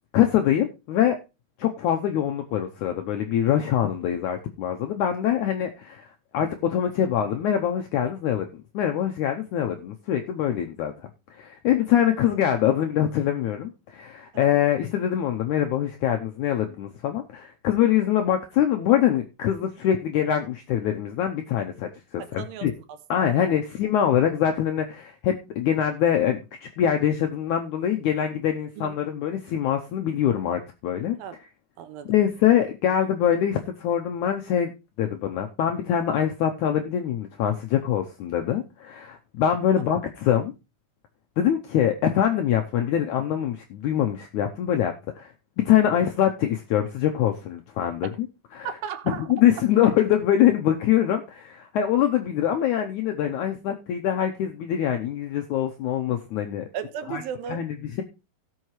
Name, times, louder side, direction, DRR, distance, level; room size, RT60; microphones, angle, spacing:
voice 1, 0.1-1.2 1.6-6.1 6.3-10.9 11.3-22.7 23.1-31.2 32.1-34.7 35.0-40.5 41.4-45.3 45.6-48.3 48.5-48.7 49.1-56.7 57.1-57.2 57.5-58.0, left 10 dB, 85° left, 1.7 m, -24 dB
voice 2, 14.3-14.6 22.2-22.7 23.3-23.6 28.8-29.0 31.2-31.4 31.8-32.1 39.8-39.9 48.6-49.3 56.7-57.6, right 8 dB, 80° right, 2.6 m, -35 dB
17.5 x 6.5 x 3.1 m
omnidirectional pair, 4.3 m